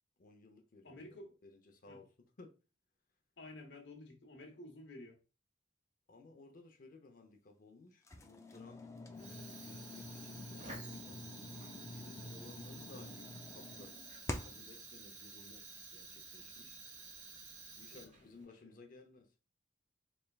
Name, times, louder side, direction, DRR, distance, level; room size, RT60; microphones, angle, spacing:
voice 1, 0.2-2.1 2.4-2.6 6.1-11.3 11.6-14.0 14.4-16.8 17.7-19.3, left 3 dB, 50° left, 0.7 m, -58 dB
voice 2, 0.8-1.3 1.9-2.0 3.4-5.2 17.9-18.1 18.4-18.8, left 2 dB, 80° left, 1.0 m, -52 dB
sound 1, 8.1-14.7, left 2 dB, 15° left, 0.4 m, -47 dB
Fire, 9.1-18.5, right 4 dB, 40° right, 1.1 m, -52 dB
4.2 x 3.3 x 2.3 m
head